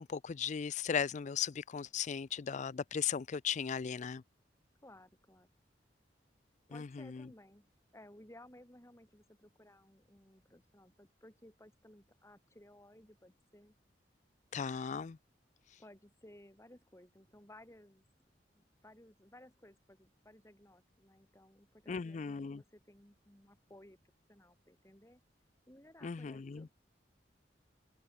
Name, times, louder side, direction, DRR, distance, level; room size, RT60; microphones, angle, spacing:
voice 1, 0.0-4.2 6.7-7.3 14.5-15.2 21.9-22.6 26.0-26.7, left 7 dB, 40° left, 0.4 m, -37 dB
voice 2, 4.8-5.5 6.7-13.7 15.8-18.0 18.5-24.0 24.3-25.2 25.7-26.7, left 1 dB, 15° left, 5.5 m, -59 dB
open air
head